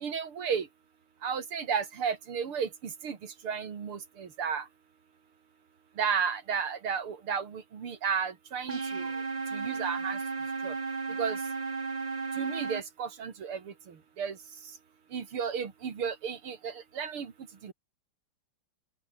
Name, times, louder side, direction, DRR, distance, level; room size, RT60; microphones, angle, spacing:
voice 1, 0.0-0.6 1.2-2.7 3.0-3.2 3.4-4.6 6.0-9.1 9.5-10.2 10.6-10.7 11.2-11.4 12.4-13.6 14.2-14.3 15.1-17.3 17.6-17.7, right 6 dB, 80° right, 3.2 m, -33 dB
sound 1, 8.7-12.8, right 4 dB, 25° right, 1.0 m, -34 dB
open air
omnidirectional pair, 2.3 m